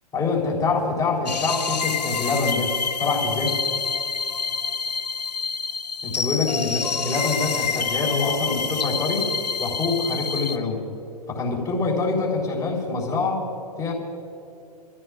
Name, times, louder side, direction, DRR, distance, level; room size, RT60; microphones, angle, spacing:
voice 1, 0.1-3.6 6.0-9.3 9.6-10.9 11.3-13.5 13.8-13.9, left 4 dB, 15° left, -3 dB, 3.8 m, -25 dB
sound 1, 1.3-10.6, left 5 dB, 80° left, 0.8 m, -27 dB
28.0 x 15.5 x 2.5 m, 2.7 s
figure-of-eight pair, 110°, 21 cm